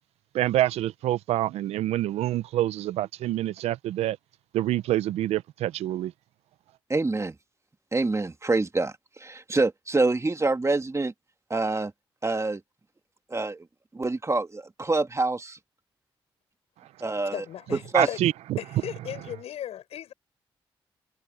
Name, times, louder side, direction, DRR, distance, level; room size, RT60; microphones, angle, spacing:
voice 1, 0.3-4.2 4.5-6.1 16.8-16.9 17.9-18.6, right 14 dB, 80° right, 0.9 m, -26 dB
voice 2, 6.9-7.3 7.9-8.9 9.2-11.1 11.5-11.9 12.2-12.6 13.3-13.6 13.9-15.6 17.0-17.4 17.9-18.1, right 3 dB, 25° right, 2.5 m, -26 dB
voice 3, 17.3-18.2 18.6-20.1, left 11 dB, 80° left, 7.5 m, -37 dB
supercardioid pair, 45°, 11 cm